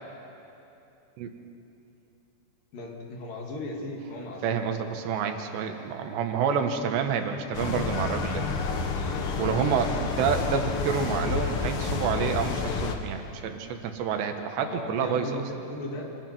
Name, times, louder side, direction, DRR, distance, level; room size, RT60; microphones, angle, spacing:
voice 1, 2.7-4.9 14.6-16.1, left 1 dB, 55° left, -1 dB, 4.2 m, -37 dB
voice 2, 4.4-8.4 9.4-15.4, right 7 dB, 85° right, 6 dB, 3.5 m, -28 dB
sound 1, 7.5-12.9, left 4 dB, 75° left, 1.2 m, -29 dB
27.0 x 25.0 x 6.1 m, 2.9 s
omnidirectional pair, 4.9 m